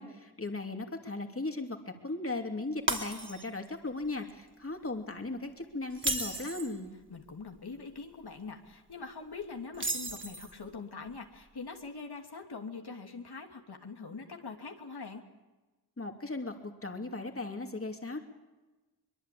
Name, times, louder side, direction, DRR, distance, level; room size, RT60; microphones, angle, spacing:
voice 1, 0.0-6.9 16.0-18.2, left 2 dB, 35° left, 4 dB, 2.9 m, -37 dB
Shatter, 2.9-3.7 4.1-4.3 5.9-6.8 9.7-10.6, right 2 dB, 30° right, 3.3 m, -34 dB
voice 2, 7.1-15.2, left 4 dB, 75° left, 3 dB, 3.0 m, -43 dB
23.5 x 23.0 x 8.6 m, 1.2 s
wide cardioid pair, 60°, 39 cm